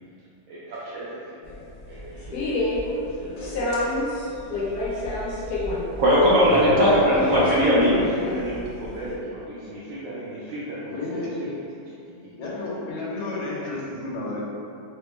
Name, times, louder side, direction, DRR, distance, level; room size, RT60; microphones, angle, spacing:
voice 1, 0.5-1.5 1.9-2.5 2.8-3.7 4.0-5.8 6.7-7.0 7.8-11.5 12.1-12.2 12.7-12.8 13.6-13.7, right 1 dB, 85° right, -9 dB, 1.4 m, -37 dB
sound 1, 1.4-9.1, left 1 dB, 65° left, 1.1 m, -28 dB
voice 2, 6.0-8.1, equal, 60° right, -7 dB, 0.9 m, -18 dB
voice 3, 10.9-11.6 12.4-14.4, left 2 dB, 90° left, -5 dB, 1.6 m, -31 dB
5.1 x 2.1 x 3.2 m, 2.6 s
omnidirectional pair, 2.1 m